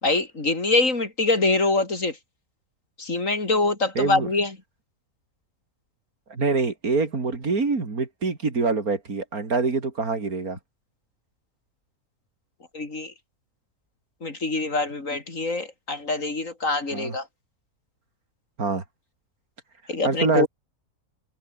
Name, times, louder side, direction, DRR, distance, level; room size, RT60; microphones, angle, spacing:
voice 1, 0.0-2.2 3.0-4.5 12.7-13.1 14.2-17.2 19.9-20.5, left 3 dB, 60° left, 4.2 m, -24 dB
voice 2, 4.0-4.3 6.3-10.6 16.9-17.2 18.6-18.8 20.1-20.5, right 4 dB, 75° right, 3.5 m, -25 dB
omnidirectional pair, 1.5 m